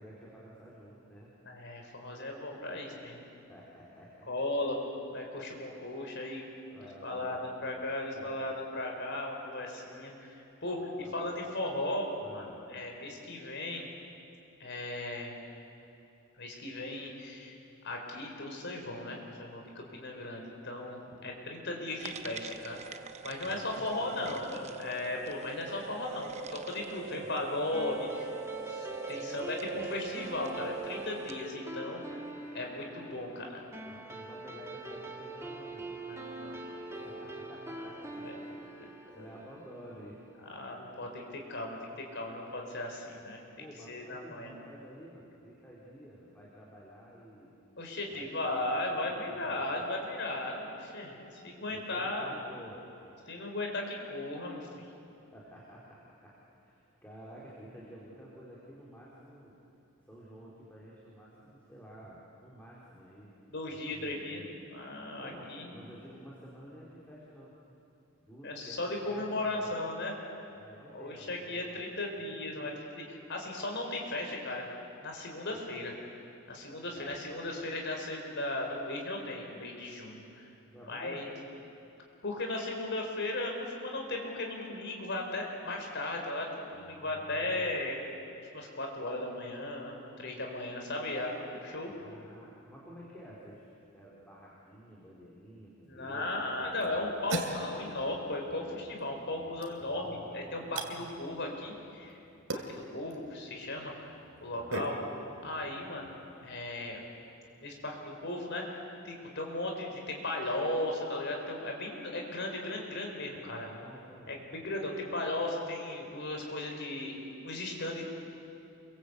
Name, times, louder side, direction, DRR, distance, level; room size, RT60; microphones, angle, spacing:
voice 1, 0.0-1.3 3.5-4.3 4.6-4.7 6.7-7.4 8.2-8.5 11.0-11.5 12.2-12.6 21.1-21.3 23.4-24.8 27.1-27.3 29.1-29.9 33.8-36.0 36.9-38.9 39.1-40.2 43.6-47.5 48.1-50.0 51.7-52.8 53.4-53.5 55.3-59.5 60.1-63.3 63.7-64.5 65.2-67.5 68.2-69.8 70.5-72.4 75.5-75.7 76.9-77.2 80.7-81.2 86.7-87.7 91.9-93.6 93.9-96.8 99.8-100.8 104.5-105.0 113.3-114.4, equal, 10° left, -6 dB, 4.1 m, -51 dB
voice 2, 1.4-3.2 4.3-4.8 5.1-6.5 7.0-12.1 12.3-12.4 12.7-13.8 14.6-15.3 16.4-17.5 17.8-28.3 28.7-32.2 32.5-33.6 36.1-36.6 37.0-37.1 38.2-38.4 39.2-39.3 40.4-43.4 43.9-44.5 47.8-52.3 53.3-54.7 63.5-64.4 64.7-65.8 68.4-70.1 70.9-74.7 75.0-75.9 76.5-80.2 80.8-81.3 82.2-88.0 88.5-91.9 95.8-102.2 102.5-104.1 104.4-104.9 105.4-106.1 106.4-107.0 107.6-113.7 114.3-117.2 117.4-118.0, left 2 dB, 55° left, 1 dB, 4.8 m, -36 dB
sound 1, 22.0-31.5, right 5 dB, 30° right, 0.8 m, -42 dB
sound 2, 27.7-40.5, right 2 dB, 10° right, 1.8 m, -44 dB
sound 3, 95.8-107.8, right 2 dB, 75° right, 2.8 m, -44 dB
28.5 x 23.5 x 8.3 m, 2.8 s
head